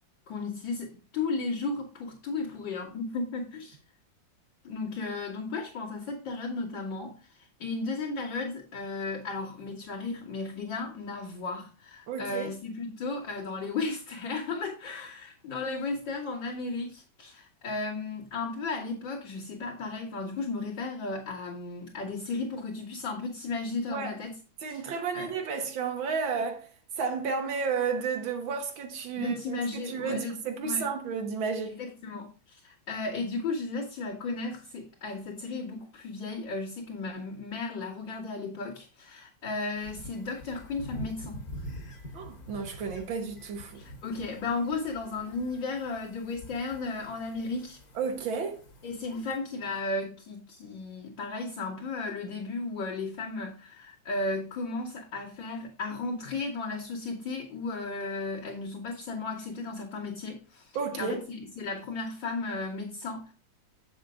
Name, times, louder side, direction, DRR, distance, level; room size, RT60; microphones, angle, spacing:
voice 1, 0.3-3.8 4.6-7.2 7.6-24.4 24.7-24.8 25.1-25.3 29.2-30.9 31.8-41.4 43.7-47.8 48.8-63.3, left 3 dB, 70° left, 2.8 m, -35 dB
voice 2, 12.1-12.5 23.9-24.1 24.6-26.7 27.0-31.8 42.1-43.8 48.0-48.6 60.8-61.2, right 5 dB, 80° right, 1.8 m, -32 dB
sound 1, 39.8-49.4, equal, 50° left, 2.2 m, -45 dB
7.5 x 7.2 x 3.8 m
omnidirectional pair, 2.1 m